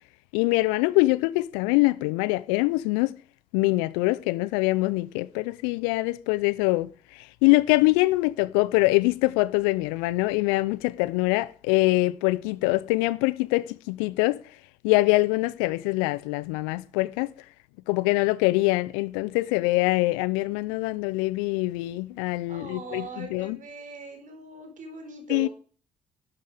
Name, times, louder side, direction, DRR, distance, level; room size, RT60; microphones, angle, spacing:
voice 1, 0.3-3.2 3.5-14.4 14.8-17.3 17.9-23.6 25.3-25.5, left 21 dB, 75° left, 0.5 m, -24 dB
voice 2, 22.5-25.5, right 4 dB, 50° right, 5.2 m, -40 dB
12.0 x 10.5 x 5.1 m
hypercardioid pair, 45°, 17 cm